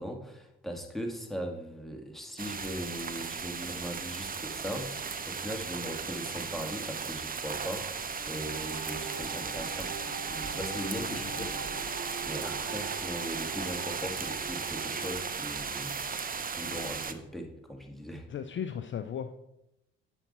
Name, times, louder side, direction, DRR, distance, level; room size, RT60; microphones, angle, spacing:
voice 1, 0.0-4.9 5.3-9.9 10.3-11.5 12.3-16.2 16.6-18.3, equal, ahead, 2 dB, 1.8 m, -39 dB
sound 1, 2.4-17.1, right 5 dB, 30° right, 0.7 m, -36 dB
Bowed string instrument, 8.0-13.4, left 4 dB, 60° left, 1.4 m, -51 dB
sound 2, 8.4-15.2, right 7 dB, 65° right, 0.7 m, -43 dB
voice 2, 18.3-19.4, left 8 dB, 40° left, 10 dB, 0.5 m, -36 dB
8.1 x 5.8 x 4.2 m, 0.87 s
hypercardioid pair, 55°, 30 cm